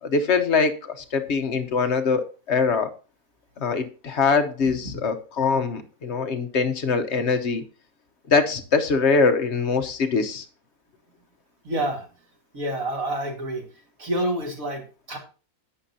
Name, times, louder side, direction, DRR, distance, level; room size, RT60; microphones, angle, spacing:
voice 1, 0.0-2.9 3.6-7.6 8.3-10.4, left 4 dB, 50° left, 0.9 m, -23 dB
voice 2, 11.6-12.1 12.5-13.7 14.0-15.2, right 1 dB, 45° right, 2.5 m, -28 dB
11.0 x 8.3 x 2.8 m
omnidirectional pair, 2.0 m